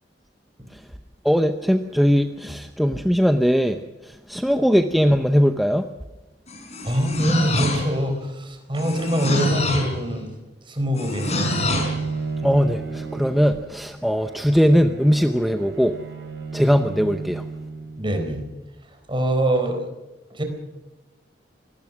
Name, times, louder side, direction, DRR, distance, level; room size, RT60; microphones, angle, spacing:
voice 1, 1.2-3.8 4.3-5.8 12.4-16.0 16.5-17.4, equal, ahead, 7 dB, 0.7 m, -20 dB
sound 1, 6.5-8.1 8.8-10.0 11.0-12.0, left 2 dB, 40° left, 4.7 m, -26 dB
voice 2, 6.8-10.3 10.7-11.5 18.0-18.4 19.1-19.9 20.3-20.4, equal, 30° right, 5 dB, 4.2 m, -24 dB
Bowed string instrument, 11.2-18.2, right 4 dB, 65° right, 5.0 m, -33 dB
25.0 x 19.5 x 6.2 m, 1.0 s
head